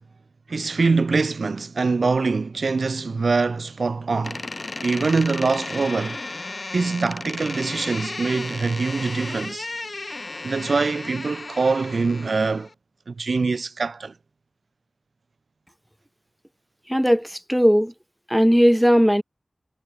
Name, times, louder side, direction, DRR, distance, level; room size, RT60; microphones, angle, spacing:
voice 1, 0.5-4.4 4.8-6.2 6.7-9.7 10.4-12.7 13.1-14.1, right 4 dB, 80° right, 3.5 m, -23 dB
Door, 4.2-12.7, left 2 dB, 50° left, 2.9 m, -34 dB
voice 2, 16.9-17.9 18.3-19.2, equal, ahead, 3.9 m, -17 dB
wide cardioid pair, 65°, 0 cm